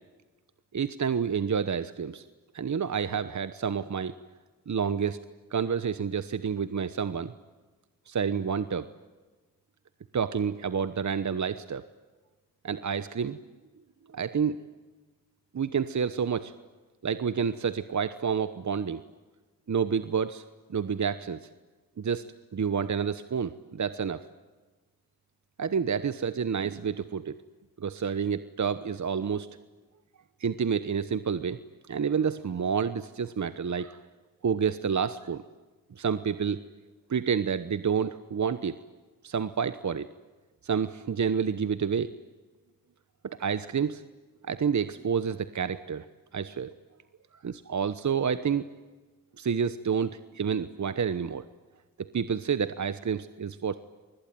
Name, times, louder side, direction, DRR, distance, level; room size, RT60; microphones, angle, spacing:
voice 1, 0.7-2.2 2.5-4.1 4.7-5.2 5.5-7.3 8.1-8.9 10.1-11.8 12.6-13.4 14.1-14.7 15.5-16.5 17.0-19.0 19.7-20.4 20.7-21.5 22.0-22.2 22.5-24.2 25.6-27.3 27.8-29.5 30.4-31.6 31.9-34.0 34.4-35.4 36.0-36.6 37.1-38.8 39.2-40.1 40.6-42.1 43.2-44.0 44.4-46.0 46.3-46.7 47.4-48.7 49.4-51.4 52.1-53.8, right 6 dB, 50° right, 13 dB, 1.1 m, -29 dB
28.0 x 21.0 x 9.2 m, 1.3 s
cardioid pair, 50°, 37 cm